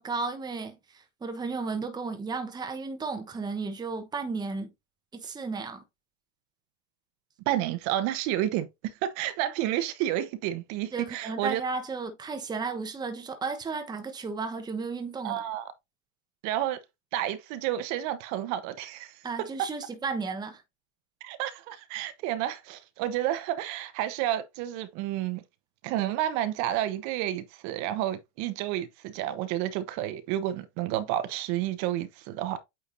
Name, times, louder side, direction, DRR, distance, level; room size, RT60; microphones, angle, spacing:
voice 1, 0.0-4.7 5.1-5.8 10.9-15.4 19.2-20.6, right 4 dB, 10° right, 1.0 m, -34 dB
voice 2, 7.5-11.6 15.2-15.6 16.4-16.8 17.1-19.2 21.2-25.4 25.8-32.6, right 13 dB, 50° right, 1.1 m, -30 dB
8.6 x 4.6 x 2.6 m
supercardioid pair, 120°, 38 cm